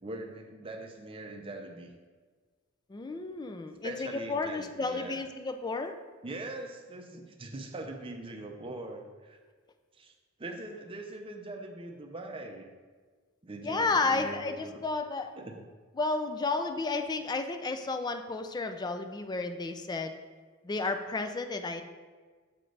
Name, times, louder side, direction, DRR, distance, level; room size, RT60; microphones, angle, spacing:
voice 1, 0.0-1.9 3.8-5.2 6.2-9.4 10.0-10.1 10.4-12.7 13.4-14.8 15.4-15.5, right 2 dB, 25° right, 3 dB, 0.6 m, -41 dB
voice 2, 2.9-6.0 13.6-15.3 16.0-20.1 20.6-21.8, left 3 dB, 20° left, 8 dB, 0.3 m, -32 dB
7.5 x 3.2 x 3.9 m, 1.4 s
head